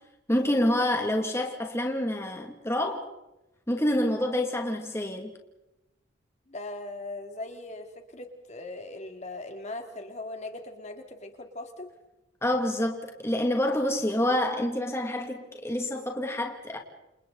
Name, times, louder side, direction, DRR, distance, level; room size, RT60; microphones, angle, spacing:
voice 1, 0.3-3.1 3.7-5.3 12.4-16.8, left 1 dB, 15° left, 2.4 m, -27 dB
voice 2, 6.5-11.9, left 2 dB, 35° left, 2.5 m, -40 dB
29.0 x 28.5 x 4.0 m
head